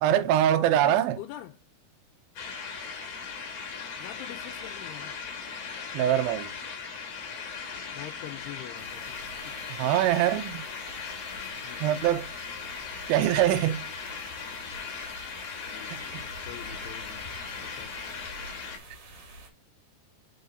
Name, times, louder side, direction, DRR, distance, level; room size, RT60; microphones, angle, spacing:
voice 1, 0.0-1.2 5.9-6.5 9.8-10.7 11.8-12.3 13.1-13.8 15.9-16.2, right 11 dB, 80° right, 2.3 m, -24 dB
voice 2, 0.8-1.6 4.0-5.2 7.9-9.2 9.5-9.6 11.5-11.9 15.7-17.3 17.6-17.9, left 13 dB, 85° left, 2.7 m, -44 dB
sound 1, 2.4-18.8, left 5 dB, 55° left, 2.0 m, -38 dB
sound 2, 8.8-19.5, right 2 dB, 50° right, 2.0 m, -48 dB
5.7 x 4.8 x 3.9 m
omnidirectional pair, 4.7 m